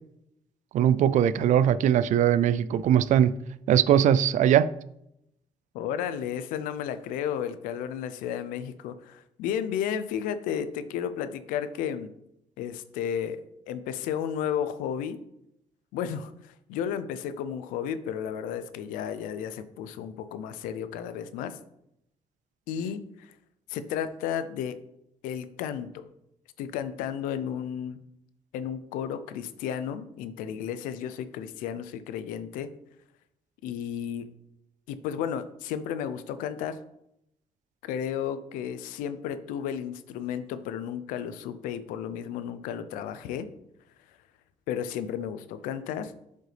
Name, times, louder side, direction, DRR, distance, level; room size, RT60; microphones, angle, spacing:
voice 1, 0.7-3.3 3.7-4.7, right 10 dB, 65° right, 0.4 m, -21 dB
voice 2, 5.7-12.1 12.6-15.2 15.9-21.6 22.7-23.3 23.7-24.8 25.2-26.0 26.6-28.0 28.5-32.7 33.6-34.3 34.9-36.8 37.8-43.5 44.7-46.1, left 8 dB, 90° left, 0.5 m, -33 dB
7.5 x 5.3 x 3.3 m
supercardioid pair, 75°, 14 cm